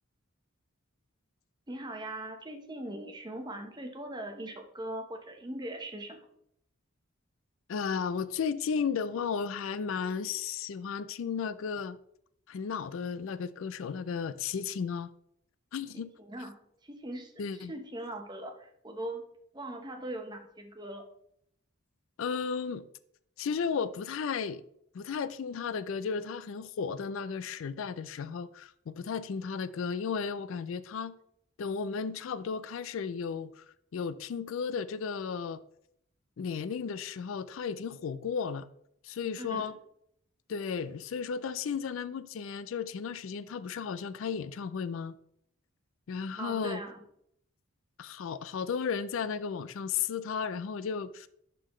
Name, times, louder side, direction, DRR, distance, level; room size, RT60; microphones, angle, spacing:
voice 1, 1.7-6.3 16.2-16.6 16.8-19.2 19.5-21.0 39.4-39.7 46.4-47.0, right 1 dB, 20° right, 0.9 m, -40 dB
voice 2, 7.7-12.0 12.5-15.1 15.7-16.1 17.4-17.7 22.2-22.9 23.4-24.6 24.9-31.1 31.6-33.6 33.9-35.6 36.4-38.7 39.0-39.8 40.5-45.2 46.1-46.8 48.0-51.3, left 6 dB, 70° left, 0.4 m, -34 dB
11.5 x 3.8 x 3.1 m
head